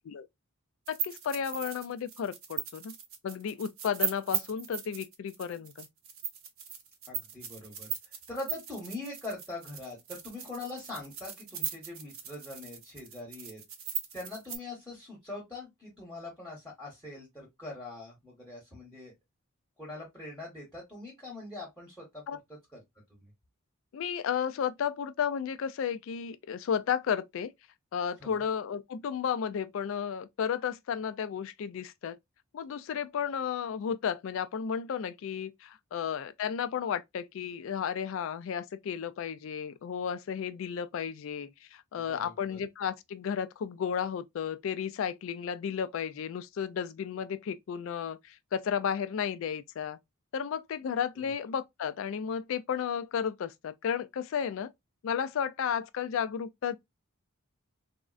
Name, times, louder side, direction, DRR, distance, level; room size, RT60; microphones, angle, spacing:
voice 1, 0.9-3.0 3.2-5.9 22.3-22.4 23.9-27.5 27.9-32.2 32.5-50.0 50.3-54.7 55.0-56.8, left 7 dB, 65° left, 0.3 m, -33 dB
sound 1, 0.9-14.6, right 8 dB, 70° right, 0.6 m, -38 dB
voice 2, 7.1-13.6 14.1-19.1 19.8-22.2 22.5-22.8 23.1-23.3 28.2-28.4 41.9-42.6, left 2 dB, 5° left, 1.0 m, -43 dB
3.5 x 2.1 x 2.3 m
head